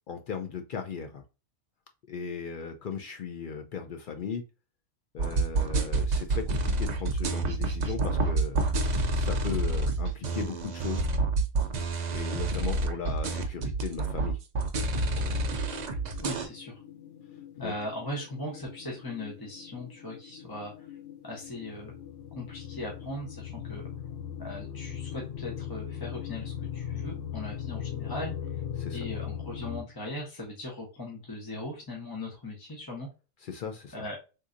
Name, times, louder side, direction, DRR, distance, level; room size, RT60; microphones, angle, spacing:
voice 1, 0.1-1.2 2.1-4.4 5.1-11.1 12.1-14.4 17.6-17.7 28.8-29.0 33.4-33.9, left 6 dB, 60° left, 5 dB, 0.6 m, -37 dB
sound 1, 5.2-16.5, right 2 dB, 55° right, 0.5 m, -28 dB
sound 2, 15.1-29.8, left 9 dB, 90° left, 1.1 m, -40 dB
voice 2, 16.2-16.8 17.6-20.9 21.2-21.9 22.3-23.8 24.4-28.3 28.9-33.1 33.9-34.2, left 1 dB, 20° left, -2 dB, 0.9 m, -39 dB
3.7 x 2.7 x 2.5 m, 0.30 s
omnidirectional pair, 1.2 m